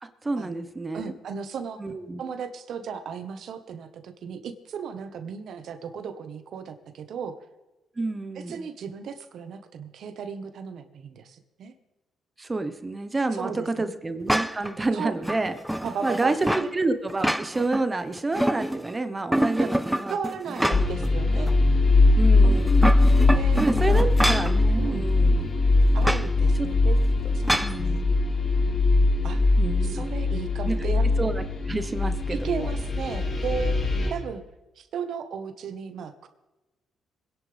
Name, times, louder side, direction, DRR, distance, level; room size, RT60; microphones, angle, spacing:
voice 1, 0.0-1.0 1.8-2.2 8.0-8.7 12.4-15.5 16.0-20.2 20.7-21.1 22.2-23.0 23.6-25.5 26.6-26.7 27.6-28.1 29.6-30.1 30.7-32.7, right 2 dB, 20° right, 9 dB, 1.2 m, -29 dB
voice 2, 0.9-1.8 2.2-7.4 8.3-11.7 13.3-13.9 14.9-15.2 15.8-16.7 19.6-19.7 20.1-21.5 22.4-22.7 23.3-24.0 24.8-25.1 25.9-27.0 27.3-28.0 29.2-29.5 29.8-31.1 32.3-33.8 34.1-34.4 34.8-36.3, right 6 dB, 65° right, 8 dB, 1.4 m, -35 dB
sound 1, 14.3-14.7 15.2-16.7 17.1-17.8 18.2-18.9 19.3-21.1 21.5-21.6 22.6-24.6 26.0-26.3 27.5-27.8, right 1 dB, 5° right, 0.5 m, -26 dB
sound 2, 20.7-34.1, left 2 dB, 45° left, 2.8 m, -21 dB
26.0 x 10.5 x 3.5 m, 1.1 s
cardioid pair, 90°, 0 cm